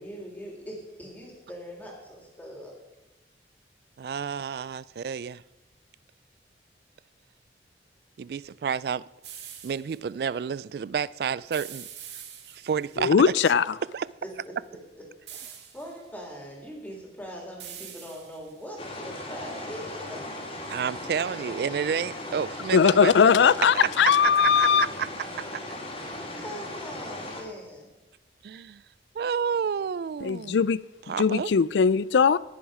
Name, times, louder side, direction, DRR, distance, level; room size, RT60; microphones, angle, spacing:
voice 1, 0.0-2.7 14.2-14.3 14.9-15.0 15.3-20.4 23.4-24.3 26.0-27.9, equal, 10° left, 3.0 m, -42 dB
voice 2, 4.0-5.4 8.2-9.0 9.6-11.9 12.5-13.3 13.9-14.1 20.7-23.3 24.2-25.1 25.4-25.6 28.4-28.8 29.1-30.7 31.1-31.5, right 7 dB, 60° right, 0.3 m, -30 dB
sound 1, 9.2-10.0 11.5-12.9 15.3-16.1 17.6-18.6, right 9 dB, 80° right, 1.8 m, -44 dB
voice 3, 13.0-13.7 22.7-24.9 30.2-32.4, left 6 dB, 85° left, 0.4 m, -20 dB
sound 2, 18.8-27.4, left 1 dB, 30° left, 2.5 m, -38 dB
18.5 x 7.1 x 4.9 m
head